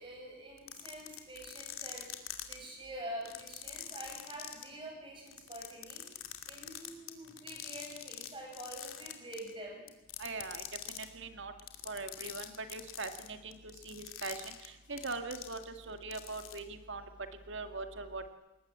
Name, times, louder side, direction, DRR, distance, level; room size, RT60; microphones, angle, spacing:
voice 1, 0.0-9.8, right 1 dB, 25° right, 0 dB, 7.9 m, -46 dB
sound 1, 0.6-2.5 3.2-4.6 5.3-8.3 8.5-9.5 9.9-11.0 11.6-15.8 16.1-16.6, left 12 dB, 80° left, 2.6 m, -44 dB
voice 2, 10.2-11.5 11.9-17.0 17.5-18.2, right 3 dB, 60° right, 7 dB, 2.0 m, -41 dB
21.5 x 19.5 x 8.9 m, 1.0 s
head